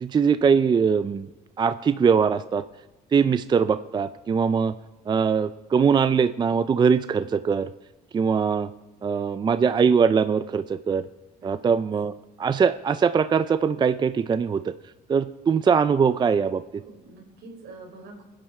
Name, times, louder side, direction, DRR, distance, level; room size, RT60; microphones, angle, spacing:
voice 1, 0.0-1.3 1.6-2.6 3.1-4.7 5.1-7.7 8.1-8.7 9.0-11.1 11.4-12.1 12.4-14.7 15.1-16.6, right 6 dB, 25° right, 13 dB, 0.4 m, -21 dB
voice 2, 11.4-11.8 16.9-18.2, right 2 dB, 75° right, 2 dB, 4.6 m, -45 dB
26.5 x 10.5 x 4.4 m, 1.1 s
cardioid pair, 110°, 17 cm